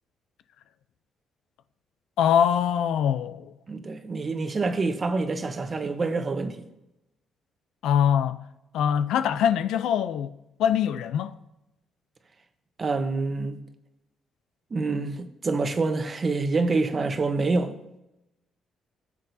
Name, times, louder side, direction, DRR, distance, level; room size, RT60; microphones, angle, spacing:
voice 1, 2.2-3.5 7.8-8.4 8.7-11.4, left 9 dB, 85° left, 0.4 m, -23 dB
voice 2, 3.7-6.7 12.8-13.6 14.7-17.8, right 3 dB, 35° right, 0.9 m, -26 dB
16.5 x 7.5 x 2.7 m
cardioid pair, 90°, 0 cm